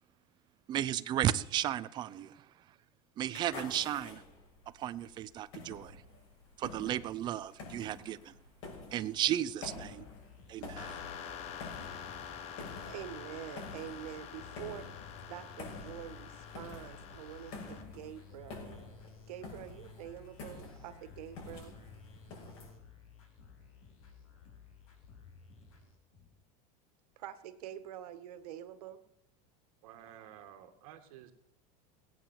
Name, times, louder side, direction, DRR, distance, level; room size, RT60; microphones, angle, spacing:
voice 1, 0.7-2.5 3.2-4.2 4.7-6.0 6.6-8.3 8.9-10.0 10.5-11.0, right 12 dB, 25° right, 0.5 m, -34 dB
sound 1, 3.2-22.7, left 3 dB, 55° left, 6.4 m, -49 dB
sound 2, 9.8-26.4, left 5 dB, 75° left, 5.6 m, -55 dB
sound 3, 10.8-17.8, left 8 dB, 35° left, 1.2 m, -47 dB
voice 2, 12.8-14.9 15.3-18.6 19.3-21.7 27.2-29.0, right 11 dB, 85° right, 1.6 m, -46 dB
voice 3, 29.8-31.3, right 10 dB, 65° right, 2.1 m, -52 dB
18.5 x 9.0 x 7.2 m
supercardioid pair, 170°, 19 cm